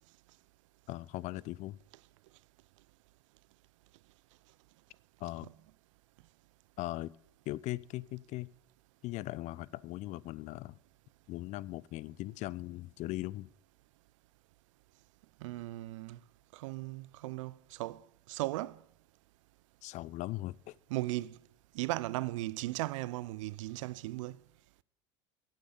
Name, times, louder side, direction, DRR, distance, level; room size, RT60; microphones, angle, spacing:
voice 1, 0.9-1.8 5.2-5.5 6.8-7.1 7.5-8.5 9.0-10.8 11.3-13.5 19.8-20.8, left 17 dB, 45° left, 0.4 m, -39 dB
voice 2, 15.4-16.2 16.5-18.8 20.9-21.4 21.7-24.4, right 18 dB, 70° right, 0.4 m, -37 dB
10.0 x 6.4 x 7.8 m
hypercardioid pair, 75°, 17 cm